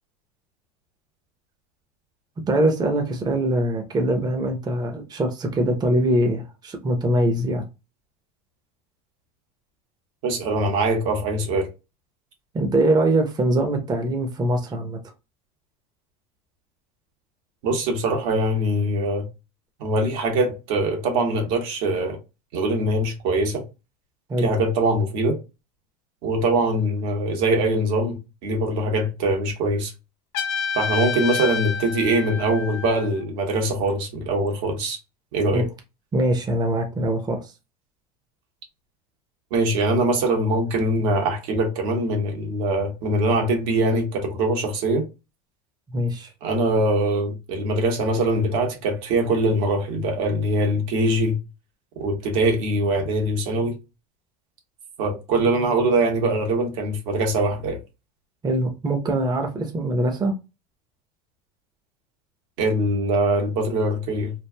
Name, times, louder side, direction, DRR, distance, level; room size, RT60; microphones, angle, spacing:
voice 1, 2.5-7.6 12.5-15.0 24.3-24.5 35.5-35.6 36.1-37.5 45.9-46.3 58.4-60.3, right 1 dB, 20° right, 0.7 m, -23 dB
voice 2, 10.2-11.7 17.6-19.2 19.8-22.2 22.5-23.6 24.4-25.4 26.2-29.9 30.7-35.0 35.3-35.7 39.5-45.1 46.4-51.4 52.0-53.8 55.0-57.8 62.6-64.3, right 1 dB, 70° right, 1.2 m, -22 dB
Trumpet, 30.3-33.2, left 6 dB, 65° left, 0.8 m, -29 dB
3.2 x 2.3 x 2.2 m
hypercardioid pair, 95°, 19 cm